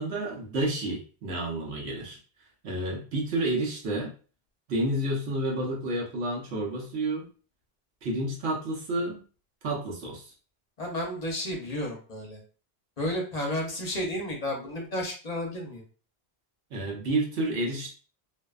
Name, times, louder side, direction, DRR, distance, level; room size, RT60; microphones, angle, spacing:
voice 1, 0.0-2.2 2.6-4.1 4.7-7.3 8.0-9.2 9.6-10.3 16.7-17.9, right 1 dB, 85° right, -2 dB, 1.1 m, -30 dB
voice 2, 10.8-12.4 13.0-15.8, left 1 dB, 45° left, 0 dB, 0.7 m, -32 dB
2.5 x 2.1 x 2.3 m, 0.38 s
omnidirectional pair, 1.1 m